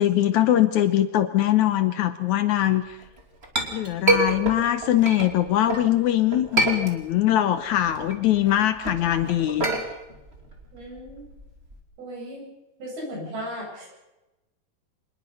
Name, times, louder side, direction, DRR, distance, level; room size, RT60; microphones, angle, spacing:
voice 1, 0.0-3.0 3.7-9.7, left 12 dB, 80° left, 11 dB, 1.7 m, -22 dB
Chink clink, 3.0-5.9 6.3-7.4 7.7-11.8, right 2 dB, 20° right, 2.3 m, -27 dB
voice 2, 10.7-11.3 12.0-12.5 12.8-13.9, equal, 70° right, -2 dB, 10.0 m, -36 dB
26.0 x 20.5 x 5.5 m, 1.0 s
omnidirectional pair, 4.5 m